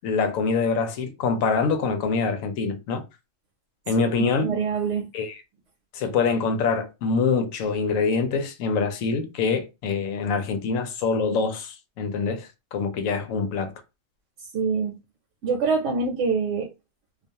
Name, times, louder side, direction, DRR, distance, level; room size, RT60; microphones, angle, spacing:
voice 1, 0.0-3.0 3.9-4.5 5.1-5.4 5.9-13.7, left 5 dB, 85° left, 1.0 m, -25 dB
voice 2, 3.9-5.1 14.5-15.0 15.4-16.7, right 5 dB, 70° right, 0.9 m, -25 dB
2.3 x 2.3 x 2.7 m
omnidirectional pair, 1.3 m